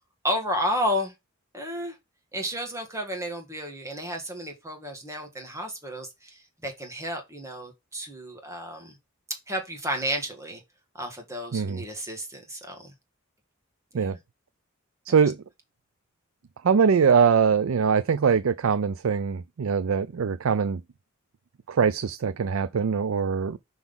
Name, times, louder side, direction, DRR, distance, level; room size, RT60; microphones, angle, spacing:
voice 1, 0.2-1.1 1.5-2.0 2.3-8.9 9.5-10.6 10.9-12.9 13.9-14.2 15.1-15.2, equal, 15° right, 1.7 m, -32 dB
voice 2, 11.5-11.8 13.9-14.2 15.1-15.4 16.6-20.8 21.7-23.6, right 6 dB, 80° right, 0.4 m, -22 dB
5.9 x 4.0 x 5.3 m
head